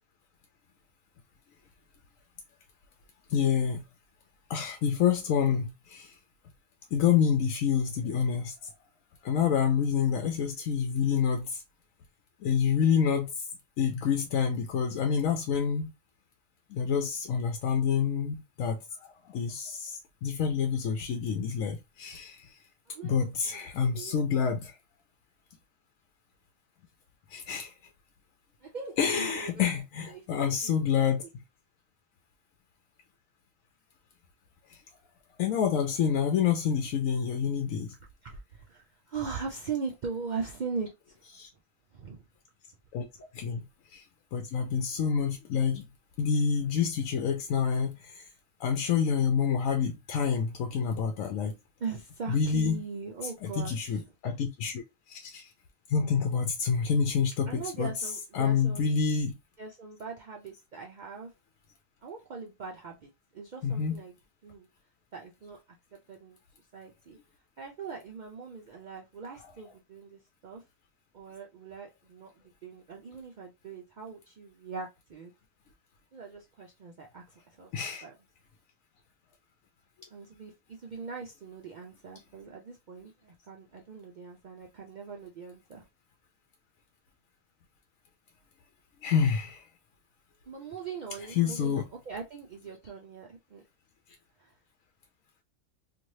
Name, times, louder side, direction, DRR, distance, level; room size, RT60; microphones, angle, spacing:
voice 1, 3.3-3.8 4.5-6.1 6.9-8.7 9.2-11.6 12.4-13.4 13.8-15.9 16.7-22.5 23.0-24.8 27.3-27.7 29.0-31.2 34.7-34.8 35.4-37.9 41.4-41.5 42.9-43.1 43.3-43.6 43.9-44.0 44.3-45.8 46.2-48.3 48.6-51.5 52.3-52.8 53.4-54.8 55.1-55.4 55.9-57.9 58.3-59.4 63.6-64.0 77.7-78.0 89.0-89.6 91.4-91.8, left 7 dB, 85° left, 1.0 m, -28 dB
voice 2, 22.9-24.5 28.6-29.7 30.1-30.8 38.2-41.2 41.9-42.2 51.8-54.1 57.5-58.9 59.6-61.3 62.0-64.1 64.4-64.7 65.1-65.8 66.1-66.4 66.7-67.2 67.6-70.6 71.1-75.3 76.1-78.2 80.1-85.9 90.5-93.6 94.4-94.5, right 5 dB, 70° right, 0.4 m, -41 dB
3.1 x 2.6 x 2.6 m
omnidirectional pair, 1.3 m